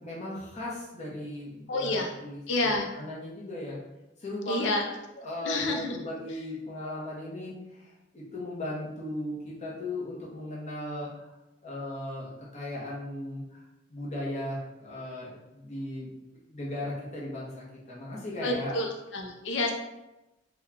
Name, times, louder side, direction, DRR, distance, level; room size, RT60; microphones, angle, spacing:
voice 1, 0.0-3.8 4.2-4.7 5.2-11.2 11.6-13.6 13.9-16.1 16.5-18.8, left 1 dB, 40° left, -5 dB, 0.9 m, -37 dB
voice 2, 1.7-2.1 2.5-2.9 4.5-4.9 5.4-6.0 18.4-19.7, left 2 dB, 80° left, 2 dB, 0.5 m, -29 dB
3.0 x 2.3 x 3.7 m, 0.98 s
head